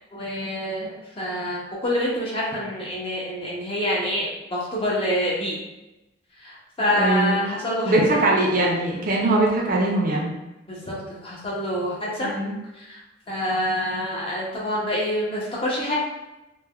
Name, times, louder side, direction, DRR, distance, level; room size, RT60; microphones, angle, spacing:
voice 1, 0.1-5.6 6.4-8.2 10.7-12.3 12.7-13.0 13.3-16.0, left 1 dB, 30° left, -4 dB, 0.6 m, -27 dB
voice 2, 6.9-7.5 7.9-10.3 12.2-12.5, right 2 dB, 45° right, -2 dB, 0.5 m, -21 dB
3.2 x 2.1 x 2.2 m, 0.99 s
head